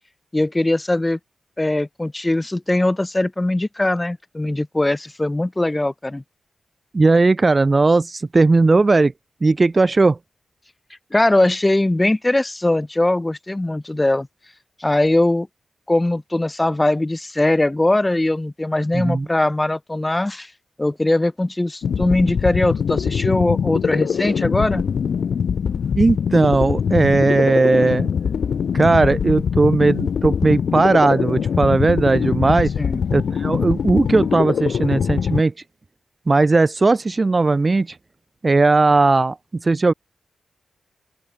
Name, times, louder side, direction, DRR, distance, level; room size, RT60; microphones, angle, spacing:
voice 1, 0.3-1.2 1.6-6.2 11.1-14.3 14.8-15.5 15.9-20.5 20.8-24.8 32.7-33.0, left 1 dB, 20° left, 3.6 m, -20 dB
voice 2, 6.9-9.1 9.4-10.2 18.9-19.3 26.0-28.1 28.7-32.7 33.1-35.5 36.3-37.9 38.4-39.4 39.6-39.9, right 3 dB, 35° right, 2.1 m, -17 dB
sound 1, 21.8-35.4, left 7 dB, 75° left, 1.6 m, -22 dB
open air
cardioid pair, 55°, 0 cm